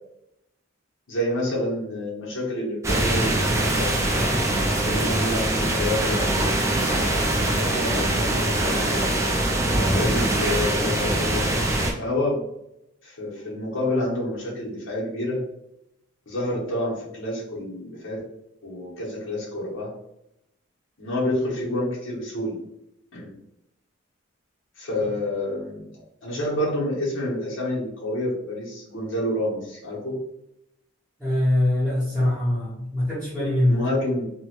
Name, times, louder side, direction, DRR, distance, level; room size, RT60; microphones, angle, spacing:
voice 1, 1.1-3.9 4.8-8.9 9.7-11.5 11.9-12.4 13.0-15.4 16.3-18.2 18.6-19.9 21.0-22.6 23.1-23.3 24.7-25.8 26.2-30.2 33.6-34.2, left 1 dB, 70° left, -5 dB, 1.1 m, -28 dB
sound 1, 2.8-11.9, right 1 dB, 15° right, 0.3 m, -23 dB
voice 2, 31.2-33.8, left 1 dB, 5° left, -12 dB, 0.9 m, -23 dB
3.0 x 2.2 x 2.9 m, 0.81 s
head